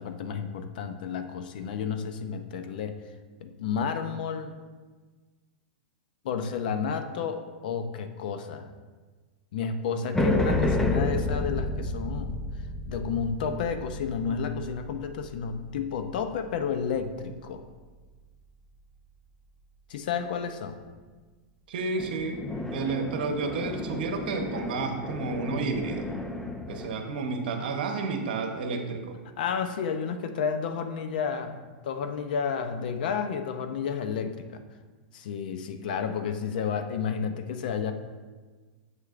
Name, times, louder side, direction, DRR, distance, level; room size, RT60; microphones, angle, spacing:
voice 1, 0.0-3.0 3.4-4.5 6.2-8.7 9.5-12.4 12.9-17.6 19.9-20.8 29.4-34.6 35.1-37.9, left 6 dB, 70° left, 8 dB, 0.6 m, -31 dB
sound 1, 10.1-16.6 22.0-26.9, left 2 dB, 10° left, 0.5 m, -31 dB
voice 2, 21.7-22.4 22.7-26.1 26.7-29.2, right 4 dB, 75° right, 5 dB, 0.9 m, -31 dB
7.3 x 6.4 x 2.5 m, 1.4 s
supercardioid pair, 140°, 5 cm